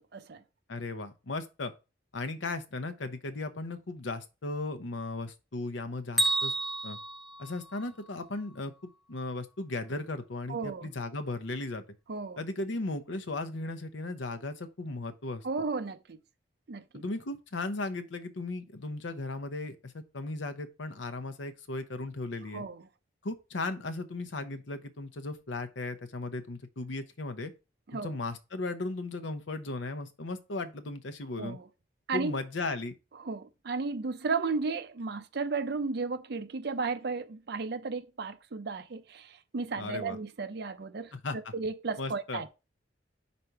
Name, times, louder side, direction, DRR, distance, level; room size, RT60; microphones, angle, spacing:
voice 1, 0.1-0.4 10.5-10.9 12.1-12.4 15.4-16.2 16.7-17.0 22.5-22.8 27.9-28.1 31.4-31.6 32.1-32.4 33.2-41.1 41.5-42.5, right 4 dB, 60° right, 0.6 m, -34 dB
voice 2, 0.7-1.7 2.1-6.5 6.8-7.0 7.4-11.8 12.4-15.4 16.9-22.6 23.2-27.5 27.9-31.6 32.1-33.0 39.8-40.2 41.1-41.5 42.0-42.4, left 2 dB, 80° left, 0.8 m, -36 dB
Bell, 6.2-8.2, right 1 dB, ahead, 0.6 m, -31 dB
5.2 x 4.2 x 4.6 m
head